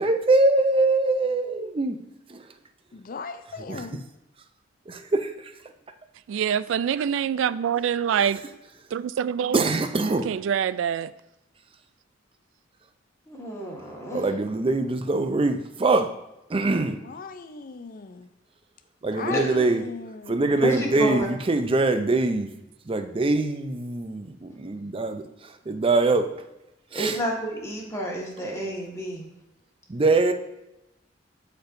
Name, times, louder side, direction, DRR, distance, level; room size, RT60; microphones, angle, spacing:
voice 1, 0.0-2.0 2.3-2.4 3.7-3.8 4.9-5.3 9.5-10.3 14.1-16.1 16.5-17.0 19.0-19.8 20.3-22.5 22.9-25.2 25.7-26.3 26.9-27.2 29.9-30.3, right 2 dB, 30° right, 0.5 m, -23 dB
voice 2, 2.9-4.0 17.0-18.3 19.2-20.6, left 5 dB, 50° left, 0.5 m, -37 dB
voice 3, 6.3-8.4 8.9-9.6 10.2-11.1, right 8 dB, 85° right, 0.3 m, -25 dB
voice 4, 13.3-14.2 19.3-19.4 20.6-21.3 26.9-29.1, equal, 15° left, 1.6 m, -29 dB
13.0 x 4.4 x 2.6 m
head